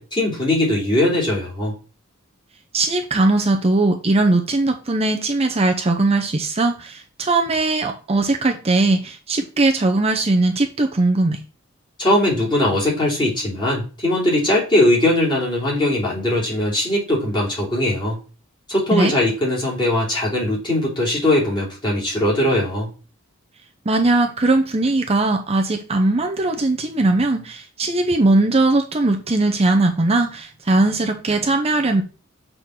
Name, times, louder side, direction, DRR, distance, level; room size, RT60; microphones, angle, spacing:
voice 1, 0.0-1.7 12.0-18.2 18.7-22.9, left 1 dB, 25° left, -5 dB, 3.3 m, -20 dB
voice 2, 2.7-11.4 18.9-19.1 23.9-32.0, right 2 dB, 30° right, 4 dB, 0.7 m, -19 dB
6.5 x 3.9 x 5.9 m, 0.36 s
head